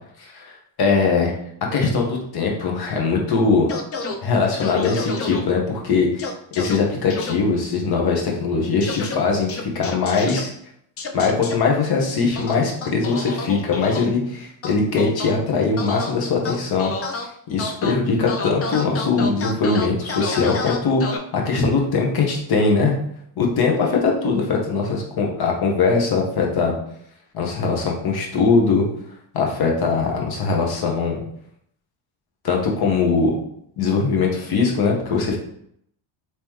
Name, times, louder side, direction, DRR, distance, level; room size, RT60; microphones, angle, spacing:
voice 1, 0.2-1.3 1.7-3.8 4.2-6.3 6.5-9.5 9.7-10.5 11.1-16.9 17.5-23.0 23.4-26.7 27.3-28.8 29.3-31.2 32.4-33.4 33.8-35.4, left 4 dB, 50° left, 0 dB, 1.1 m, -21 dB
sound 1, 3.7-4.2 4.6-5.4 6.2-6.8 7.1-7.3 8.8-9.2 9.5-10.4 11.0-11.5 12.4-14.1 14.6-15.3 15.8-16.1 16.5-17.3 17.6-17.9 18.3-21.2, left 4 dB, 30° left, 0.4 m, -29 dB
3.6 x 3.1 x 3.0 m, 0.69 s
cardioid pair, 115°, 49 cm